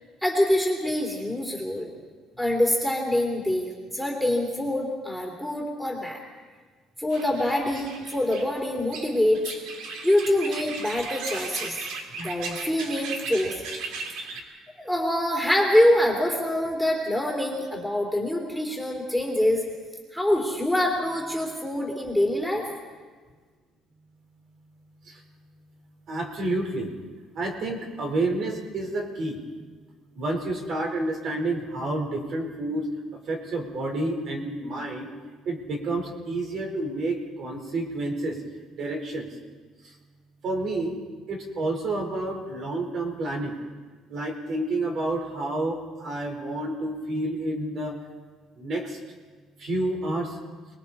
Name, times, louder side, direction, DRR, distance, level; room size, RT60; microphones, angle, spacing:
voice 1, 0.2-1.9 2.4-6.2 7.0-9.4 10.0-11.8 12.2-13.5 14.1-19.6 20.1-22.6, left 1 dB, ahead, 0 dB, 3.2 m, -25 dB
sound 1, 7.1-14.4, right 4 dB, 80° right, 2.8 m, -37 dB
voice 2, 26.1-26.9 27.3-29.4 30.1-35.1 35.4-38.4 38.8-39.3 39.8-39.9 40.4-41.0 41.3-43.6 44.1-48.0 48.6-49.0 49.6-50.4, right 2 dB, 45° right, 2 dB, 4.2 m, -29 dB
29.0 x 21.0 x 4.3 m, 1.5 s
cardioid pair, 160°, 0 cm